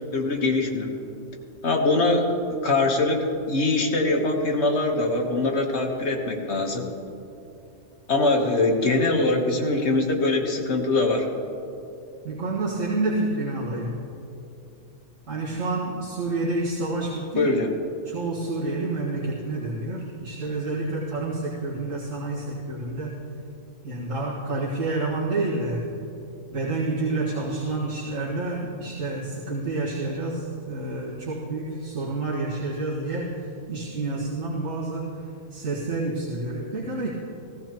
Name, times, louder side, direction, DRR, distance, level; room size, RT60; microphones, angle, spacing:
voice 1, 0.1-0.9 1.6-2.3 2.6-6.8 8.1-11.3 17.4-17.7, left 2 dB, 60° left, 1 dB, 1.5 m, -23 dB
voice 2, 12.2-14.0 15.3-17.5 18.1-23.2 23.8-25.9 26.5-35.1 35.5-37.1, right 2 dB, 90° right, -8 dB, 2.1 m, -29 dB
16.5 x 16.0 x 3.0 m, 2.7 s
omnidirectional pair, 1.3 m